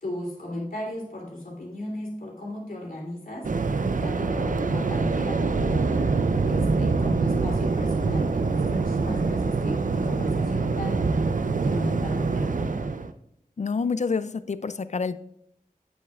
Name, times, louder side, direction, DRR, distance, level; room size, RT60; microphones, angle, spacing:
voice 1, 0.0-5.9 6.4-11.2 11.6-12.6, left 1 dB, 70° left, -3 dB, 2.9 m, -36 dB
Waves surf, 3.4-13.1, right 4 dB, 65° right, 0.5 m, -25 dB
voice 2, 13.6-15.2, left 5 dB, 50° left, 14 dB, 0.4 m, -28 dB
8.5 x 8.3 x 2.4 m, 0.75 s
wide cardioid pair, 70°, 15 cm